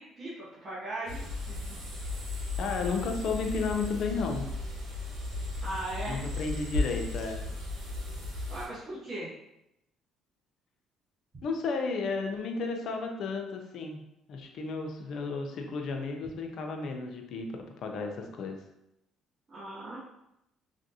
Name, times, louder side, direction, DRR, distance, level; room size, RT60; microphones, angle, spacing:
voice 1, 0.0-1.8 5.6-6.2 8.5-9.3 19.5-20.0, right 1 dB, 40° right, -8 dB, 0.8 m, -38 dB
sound 1, 1.1-8.7, left 2 dB, 85° right, 1.1 m, -35 dB
voice 2, 2.6-4.5 6.1-7.5 11.4-14.0 14.3-18.6, left 4 dB, 65° left, 3 dB, 0.5 m, -33 dB
3.3 x 2.5 x 2.7 m, 0.84 s
cardioid pair, 95°, 0 cm